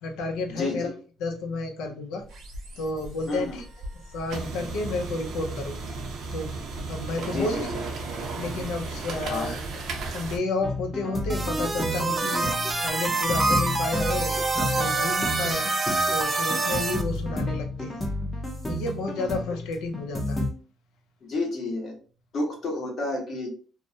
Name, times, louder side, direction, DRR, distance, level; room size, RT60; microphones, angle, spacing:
voice 1, 0.0-0.9 1.2-2.2 2.8-3.6 4.1-6.0 6.3-6.5 6.9-7.8 8.4-9.6 10.1-12.5 12.8-15.7 16.1-18.0 18.7-20.4, left 3 dB, 90° left, 4 dB, 0.5 m, -31 dB
voice 2, 0.6-0.9 3.3-3.6 7.3-7.6 9.3-9.6 21.2-21.9 22.3-23.5, left 2 dB, 50° left, 0 dB, 1.0 m, -30 dB
sound 1, 2.2-10.4, right 3 dB, 70° right, 0.6 m, -35 dB
sound 2, 10.6-20.5, left 1 dB, 15° left, 0.6 m, -32 dB
sound 3, 11.3-17.0, right 3 dB, 20° right, 0.4 m, -26 dB
2.4 x 2.0 x 2.6 m, 0.38 s
cardioid pair, 115°, 0 cm